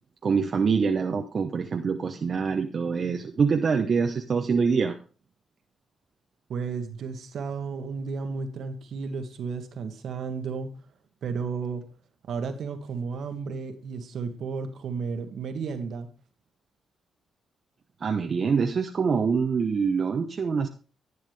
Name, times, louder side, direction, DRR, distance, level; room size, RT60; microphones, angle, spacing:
voice 1, 0.2-5.0 18.0-20.7, right 5 dB, 55° right, 4 dB, 0.9 m, -25 dB
voice 2, 6.5-10.7 11.2-11.8 12.3-16.1, right 5 dB, 70° right, 7 dB, 1.5 m, -33 dB
11.0 x 9.3 x 3.5 m, 0.36 s
supercardioid pair, 55°, 0 cm